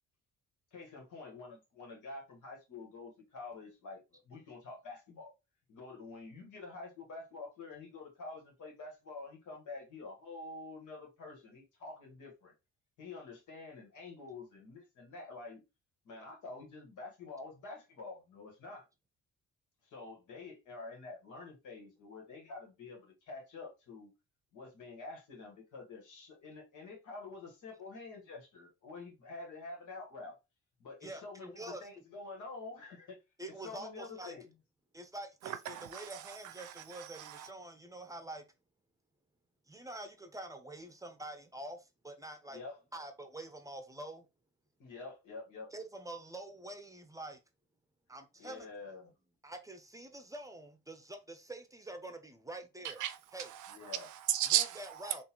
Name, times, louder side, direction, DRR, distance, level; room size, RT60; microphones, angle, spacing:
voice 1, 0.7-5.3 5.7-12.5 13.0-15.6 16.0-18.9 19.8-24.1 24.5-30.3 30.8-33.2 33.6-34.5 42.5-42.8 44.8-45.7 48.4-49.1 53.7-54.1, left 3 dB, 80° left, 1.6 m, -48 dB
voice 2, 31.0-31.9 33.4-34.3 34.9-38.4 39.7-42.6 42.9-44.3 45.7-47.4 48.1-48.7 49.4-53.0 53.3-53.5 54.8-55.2, right 1 dB, 10° right, 0.6 m, -46 dB
voice 3, 35.4-37.5 52.8-55.2, right 12 dB, 75° right, 0.6 m, -36 dB
3.8 x 2.6 x 2.9 m
cardioid pair, 90°, 30 cm